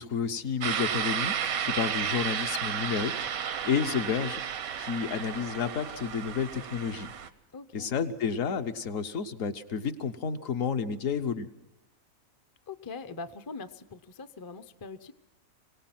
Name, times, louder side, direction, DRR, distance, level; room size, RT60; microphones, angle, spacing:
voice 1, 0.0-1.4 1.6-4.4 4.8-7.1 7.7-11.5, left 6 dB, 70° left, 7 dB, 1.3 m, -31 dB
sound 1, 0.6-7.3, right 8 dB, 90° right, 1.3 m, -33 dB
voice 2, 7.5-7.9 12.7-15.1, left 4 dB, 30° left, 10 dB, 0.4 m, -42 dB
25.0 x 17.5 x 5.9 m, 0.99 s
omnidirectional pair, 1.4 m